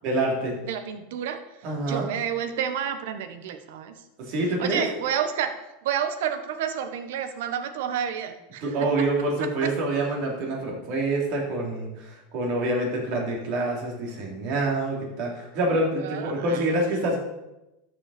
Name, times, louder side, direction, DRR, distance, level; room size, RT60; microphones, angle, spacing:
voice 1, 0.0-0.6 1.6-2.1 4.2-4.8 8.6-17.2, right 2 dB, 50° right, -1 dB, 3.1 m, -26 dB
voice 2, 0.6-4.0 4.6-5.5 5.8-9.1 9.4-9.7 15.9-16.6, right 8 dB, 75° right, 9 dB, 1.1 m, -30 dB
13.0 x 5.6 x 4.3 m, 0.96 s
supercardioid pair, 150°, 0 cm